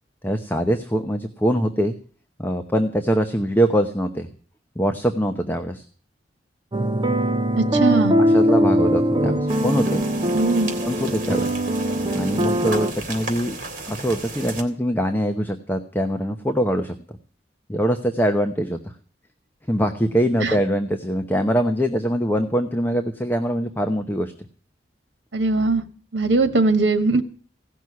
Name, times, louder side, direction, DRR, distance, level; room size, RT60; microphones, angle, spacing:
voice 1, 0.2-2.0 2.4-4.3 4.8-5.9 8.2-10.1 10.8-11.6 12.1-13.6 13.9-17.0 17.7-18.8 19.7-24.3, equal, 10° left, 6 dB, 0.9 m, -23 dB
sound 1, 6.7-12.9, equal, 25° right, 0.8 m, -21 dB
voice 2, 7.6-8.2 10.3-10.7 20.4-20.5 25.3-25.8 26.1-27.2, right 3 dB, 70° right, 8 dB, 1.6 m, -20 dB
sound 2, 9.5-14.6, right 2 dB, 50° right, 2.8 m, -34 dB
16.5 x 6.2 x 9.6 m, 0.44 s
head